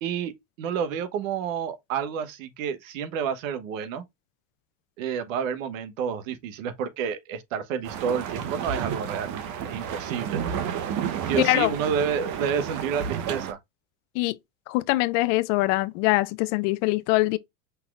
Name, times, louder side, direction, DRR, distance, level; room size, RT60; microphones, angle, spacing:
voice 1, 0.0-4.0 5.0-9.3 9.6-10.4 11.3-13.6, right 7 dB, 80° right, 1.2 m, -29 dB
sound 1, 7.8-13.5, right 8 dB, 45° right, 0.9 m, -31 dB
voice 2, 11.4-11.7 14.1-14.4 14.7-17.4, left 20 dB, 65° left, 0.6 m, -23 dB
5.5 x 3.9 x 2.4 m
supercardioid pair, 140°, 39 cm